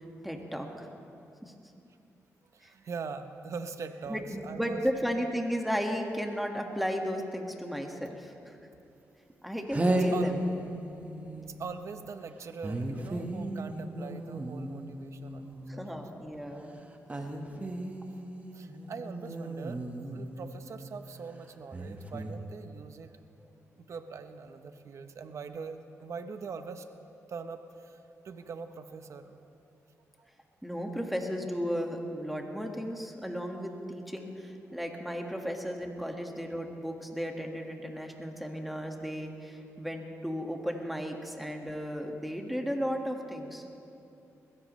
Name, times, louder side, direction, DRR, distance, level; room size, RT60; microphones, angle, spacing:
voice 1, 0.2-0.9 1.4-1.5 2.6-2.7 4.1-8.6 9.4-10.4 15.7-16.8 30.6-43.6, equal, ahead, 2 dB, 1.7 m, -34 dB
voice 2, 2.5-4.9 9.9-10.3 11.5-15.9 18.5-23.1 23.8-26.9 27.3-28.0 28.2-29.4 30.2-30.3, right 5 dB, 60° right, 9 dB, 0.9 m, -42 dB
sound 1, 9.3-9.4 9.7-11.9 12.6-16.0 17.1-20.9 21.7-22.4, right 1 dB, 25° right, 1.4 m, -34 dB
21.5 x 15.5 x 3.2 m, 2.8 s
cardioid pair, 75°, 6 cm